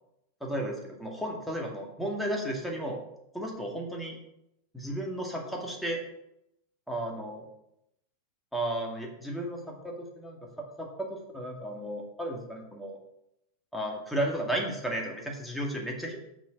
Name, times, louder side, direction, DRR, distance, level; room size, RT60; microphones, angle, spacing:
voice 1, 0.4-3.0 3.3-4.2 4.7-6.0 6.9-7.4 8.5-13.0 13.7-16.2, right 1 dB, ahead, -1 dB, 2.1 m, -34 dB
7.3 x 6.1 x 6.3 m, 0.81 s
figure-of-eight pair, 90°, 0 cm